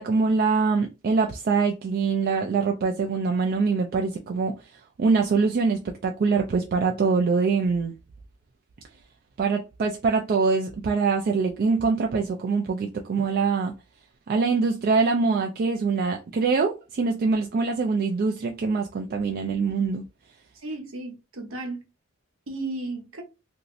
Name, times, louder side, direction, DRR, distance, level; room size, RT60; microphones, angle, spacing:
voice 1, 0.0-4.6 5.0-7.9 9.4-13.7 14.3-20.0, right 4 dB, 45° right, 0.3 m, -24 dB
voice 2, 20.6-21.8 22.5-23.2, right 2 dB, 65° right, 0.9 m, -34 dB
3.0 x 2.6 x 2.5 m
head